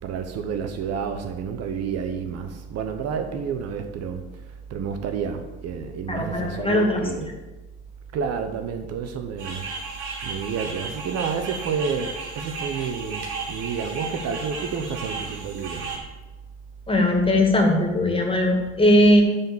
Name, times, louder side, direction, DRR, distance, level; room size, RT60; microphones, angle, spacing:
voice 1, 0.0-4.2 4.7-7.3 8.1-9.7 10.2-15.9, right 6 dB, 55° right, 0.9 m, -30 dB
voice 2, 6.1-7.3 16.9-19.2, left 1 dB, 15° left, 2.2 m, -19 dB
sound 1, 9.4-16.0, right 4 dB, 70° right, 2.9 m, -34 dB
9.0 x 4.2 x 7.2 m
supercardioid pair, 90°, 31 cm